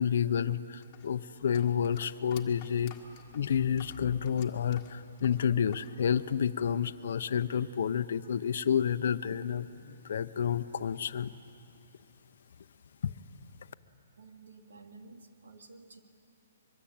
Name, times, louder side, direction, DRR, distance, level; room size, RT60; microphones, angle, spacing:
voice 1, 0.0-2.9 3.3-11.3 13.0-13.1, left 8 dB, 55° left, 12 dB, 0.8 m, -30 dB
sound 1, 0.8-5.9 6.2-7.0, left 9 dB, 20° left, 1.7 m, -54 dB
voice 2, 14.2-16.0, right 3 dB, 90° right, 4 dB, 2.8 m, -52 dB
25.0 x 22.5 x 8.9 m, 2.7 s
hypercardioid pair, 170°, 0 cm